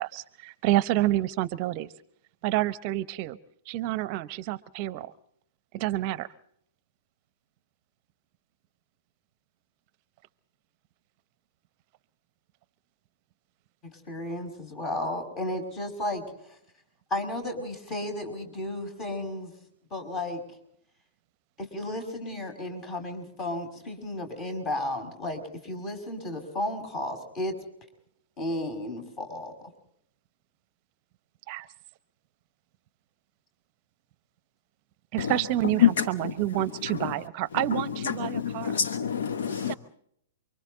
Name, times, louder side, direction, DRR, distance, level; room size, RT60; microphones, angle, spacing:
voice 1, 0.0-1.9 2.4-3.4 3.7-5.1 5.7-6.3 31.5-31.7 35.1-38.7 39.7-39.8, right 15 dB, 40° right, 17 dB, 0.7 m, -28 dB
voice 2, 13.8-16.5 17.1-19.5 19.9-20.4 21.6-27.5 28.4-29.5, left 1 dB, 30° left, 7 dB, 5.8 m, -33 dB
voice 3, 35.2-37.2 37.5-39.7, left 9 dB, 65° left, 10 dB, 1.0 m, -28 dB
29.0 x 24.0 x 3.9 m, 0.71 s
figure-of-eight pair, 110°, 0 cm